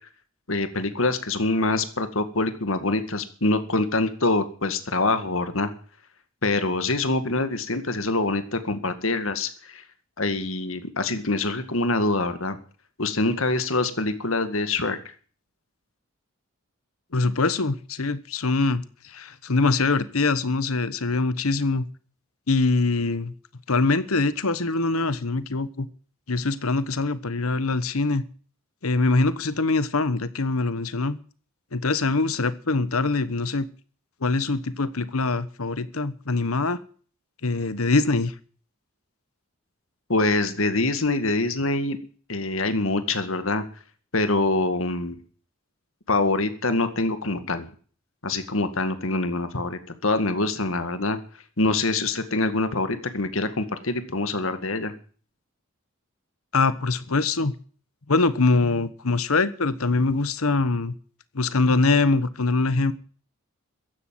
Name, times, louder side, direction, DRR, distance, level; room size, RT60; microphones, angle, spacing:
voice 1, 0.5-5.7 6.4-9.8 10.2-12.6 13.0-15.1 40.1-42.0 42.3-43.7 44.1-45.2 46.1-47.7 48.2-51.2 51.6-54.9, left 2 dB, 70° left, 10 dB, 2.1 m, -25 dB
voice 2, 17.1-21.8 22.5-23.3 23.7-25.9 26.3-28.2 28.8-31.2 31.7-33.7 34.2-36.8 37.4-38.3 56.5-57.5 58.1-60.9 61.3-62.9, left 3 dB, 90° left, 15 dB, 1.2 m, -23 dB
15.0 x 11.0 x 9.1 m, 0.43 s
head